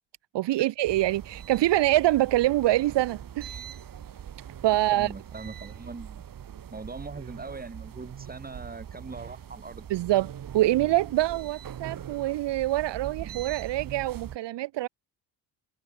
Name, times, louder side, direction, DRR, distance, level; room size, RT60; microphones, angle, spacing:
voice 1, 0.3-3.6 4.6-5.1 9.9-14.9, right 16 dB, 75° right, 1.3 m, -25 dB
sound 1, 0.8-14.4, right 9 dB, 50° right, 2.6 m, -42 dB
voice 2, 4.9-6.3 6.7-9.9, right 3 dB, 20° right, 5.8 m, -41 dB
cardioid pair, 100°, 43 cm